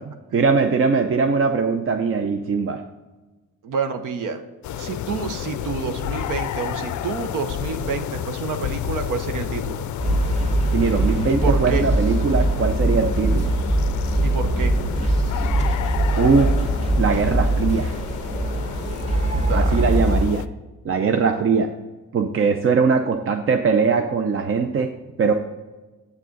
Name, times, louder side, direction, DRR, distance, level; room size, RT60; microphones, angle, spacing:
voice 1, 0.1-2.8 10.7-13.5 16.2-16.7 17.0-17.9 19.5-20.4 20.8-21.7 22.1-24.9 25.2-25.3, right 5 dB, 40° right, 6 dB, 0.6 m, -21 dB
voice 2, 3.6-4.4 4.8-9.9 11.3-11.9 14.2-14.9 19.3-19.7, right 5 dB, 70° right, 7 dB, 0.9 m, -28 dB
sound 1, 4.6-20.5, left 10 dB, 60° left, 0.5 m, -31 dB
sound 2, 10.0-20.2, right 1 dB, 20° right, 1.8 m, -22 dB
7.8 x 6.0 x 3.9 m, 1.2 s
cardioid pair, 100°, 33 cm